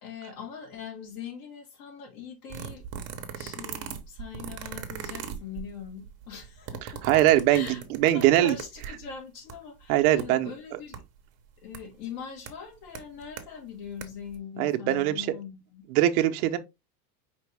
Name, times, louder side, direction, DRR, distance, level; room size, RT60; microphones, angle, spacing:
voice 1, 0.0-2.9 3.3-11.0 11.6-15.8, left 6 dB, 55° left, 2.3 m, -42 dB
sound 1, 2.5-9.1 9.5-9.6 9.8-10.2 10.9-11.0 11.7-11.8 12.5-12.6 12.9-13.4 13.8-14.0 14.3-14.4, right 8 dB, 35° right, 0.8 m, -38 dB
voice 2, 7.0-7.7 8.0-8.5 9.9-10.5 14.6-15.3 15.9-16.6, right 13 dB, 70° right, 0.8 m, -21 dB
5.2 x 2.9 x 3.3 m
supercardioid pair, 150°, 46 cm